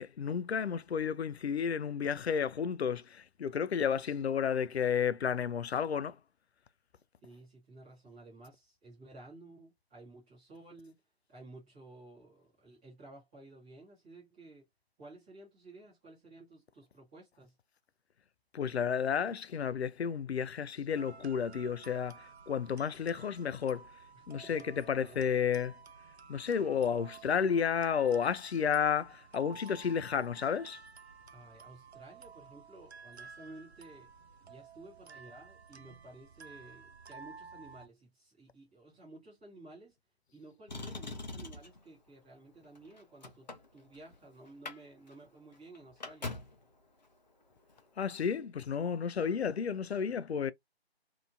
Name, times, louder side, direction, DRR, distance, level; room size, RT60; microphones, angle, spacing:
voice 1, 0.0-6.2 18.5-23.9 24.3-25.7 26.3-30.8 48.0-50.5, left 7 dB, 80° left, 0.5 m, -32 dB
voice 2, 7.2-11.0 11.3-14.7 15.0-17.5 24.1-24.7 25.0-25.4 31.3-34.1 34.5-40.0 40.3-46.3, right 2 dB, 10° right, 0.9 m, -54 dB
sound 1, 20.9-37.9, right 5 dB, 85° right, 0.6 m, -53 dB
Motor vehicle (road), 40.7-41.8 42.6-44.2 44.5-44.8 45.1-45.2 45.5-46.6 47.7-47.8, left 3 dB, 45° left, 0.7 m, -42 dB
2.8 x 2.3 x 2.5 m
figure-of-eight pair, 155°, 32 cm